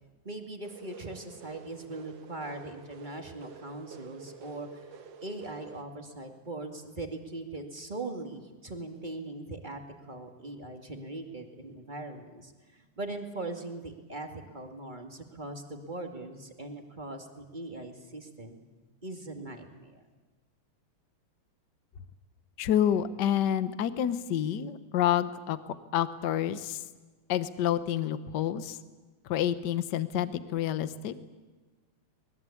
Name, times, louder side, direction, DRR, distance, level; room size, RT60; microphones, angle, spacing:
voice 1, 0.2-9.8 10.1-18.6 19.0-20.0, right 2 dB, 20° right, 4 dB, 1.9 m, -40 dB
sound 1, 0.6-5.8, right 6 dB, 60° right, 2.2 m, -49 dB
voice 2, 22.6-25.6 25.9-26.8 27.3-28.8 29.3-31.1, left 10 dB, 65° left, 13 dB, 1.0 m, -28 dB
25.5 x 20.5 x 8.6 m, 1.3 s
omnidirectional pair, 3.3 m